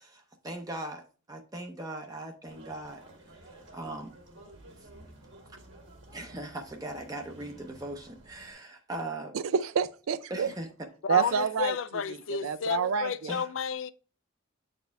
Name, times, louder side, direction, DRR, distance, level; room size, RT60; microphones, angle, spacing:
voice 1, 0.0-3.0 3.4-4.1 6.1-9.4 10.3-10.7 11.3-11.4 13.3-13.5, right 1 dB, 15° right, 0.6 m, -39 dB
sound 1, 2.4-8.5, right 1 dB, 60° right, 1.9 m, -52 dB
voice 2, 9.3-10.5 11.1-11.8 12.1-13.3, right 7 dB, 85° right, 0.4 m, -28 dB
voice 3, 11.0-13.9, left 6 dB, 70° left, 0.4 m, -31 dB
8.0 x 4.3 x 3.4 m
head